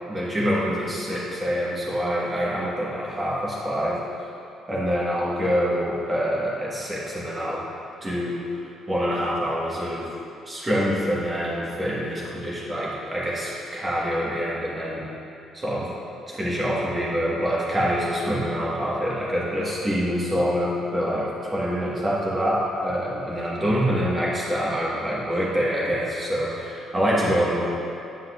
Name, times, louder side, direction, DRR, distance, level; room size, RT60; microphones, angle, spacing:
voice 1, 0.1-4.0 4.7-7.6 8.0-8.4 8.9-10.1 10.5-15.1 15.5-16.0 16.3-27.6, equal, 20° right, -6 dB, 1.5 m, -25 dB
9.0 x 7.9 x 2.5 m, 2.6 s
cardioid pair, 150°, 0 cm